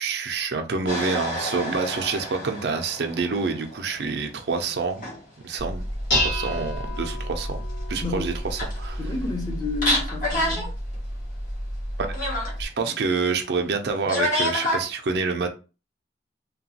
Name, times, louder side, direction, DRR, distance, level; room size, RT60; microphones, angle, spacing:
voice 1, 0.0-5.1 5.4-5.9 6.2-7.6 7.9-9.0 12.0-12.1 12.6-15.5, right 4 dB, 75° right, 0.5 m, -27 dB
sound 1, 0.9-4.1 4.7-5.2 5.5-5.6 8.0-8.1 8.3-9.1 9.4-9.5 9.8-10.7 10.9-11.0 12.1-12.5 14.1-14.8, left 1 dB, 50° left, 1.1 m, -28 dB
Dishes pots and pans, 5.6-12.7, equal, 85° left, 1.5 m, -30 dB
voice 2, 8.0-8.3 9.0-10.7, left 3 dB, 25° left, 0.7 m, -31 dB
2.9 x 2.2 x 2.7 m
head